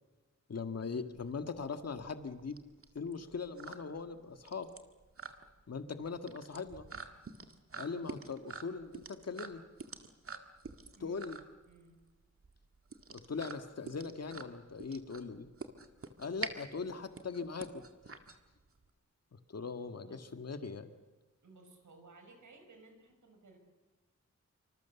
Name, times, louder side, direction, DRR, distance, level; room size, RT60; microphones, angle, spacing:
voice 1, 0.5-2.6 3.0-4.7 5.7-6.9 7.8-9.6 11.0-11.4 13.1-15.5 16.2-17.8 19.5-20.9, left 5 dB, 60° left, 8 dB, 1.8 m, -40 dB
sound 1, 1.1-18.9, right 4 dB, 50° right, 2.0 m, -47 dB
voice 2, 11.7-12.0 20.0-20.4 21.4-23.6, right 3 dB, 90° right, 5 dB, 6.0 m, -58 dB
27.0 x 25.5 x 7.1 m, 1.2 s
wide cardioid pair, 110°, 29 cm